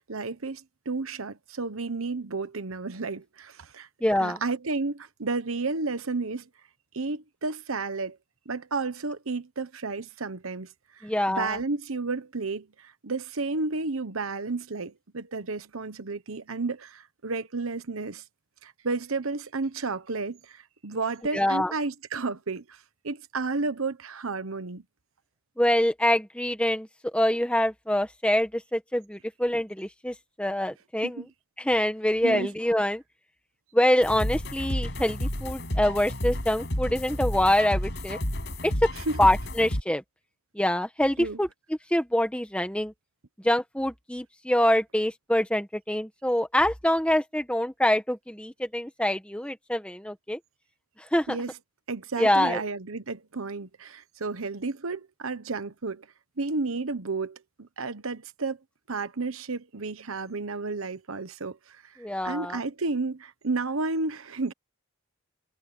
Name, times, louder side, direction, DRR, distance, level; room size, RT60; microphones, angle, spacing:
voice 1, 0.0-3.9 4.2-6.5 6.9-8.2 8.5-18.2 18.6-24.8 31.0-31.3 32.2-32.5 38.9-39.2 41.2-41.4 51.3-51.5 51.9-56.1 56.4-58.6 58.9-61.9 62.2-64.5, right 3 dB, 80° right, 1.1 m, -32 dB
voice 2, 4.0-4.4 11.0-11.6 21.3-21.7 25.6-26.9 27.1-31.2 31.6-33.0 33.7-38.2 38.6-38.9 39.2-40.0 40.5-41.5 41.9-42.9 43.4-50.4 51.1-51.4 52.2-52.6 62.0-62.6, left 1 dB, 5° left, 1.5 m, -25 dB
sound 1, 34.0-39.8, left 1 dB, 55° left, 6.3 m, -31 dB
head